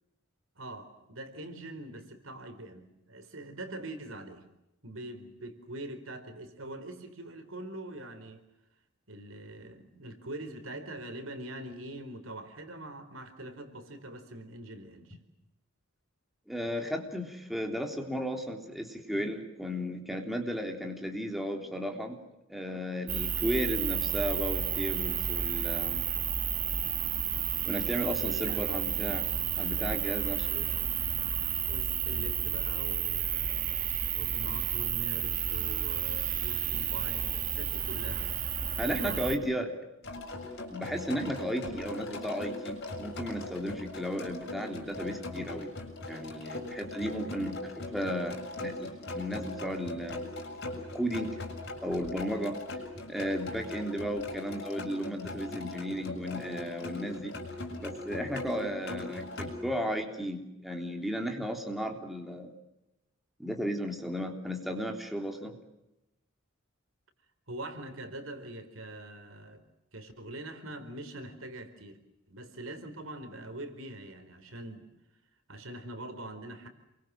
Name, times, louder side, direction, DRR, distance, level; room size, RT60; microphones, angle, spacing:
voice 1, 0.6-4.5 4.8-8.4 9.1-15.2 28.2-28.6 30.5-30.9 31.7-38.4 38.8-39.7 67.5-69.6 69.9-72.0 72.3-74.9 75.5-76.7, right 1 dB, 75° right, 8 dB, 4.4 m, -43 dB
voice 2, 16.5-22.2 22.5-26.0 27.7-29.3 29.6-30.6 38.8-39.7 40.7-45.7 46.1-50.3 50.9-51.3 51.8-52.6 53.1-57.3 57.8-62.5 63.4-65.5, equal, ahead, 2 dB, 3.4 m, -34 dB
sound 1, 23.1-39.4, right 9 dB, 40° right, 1.7 m, -31 dB
sound 2, 40.0-59.5, left 2 dB, 55° left, 7.2 m, -40 dB
28.5 x 23.5 x 7.6 m, 0.91 s
head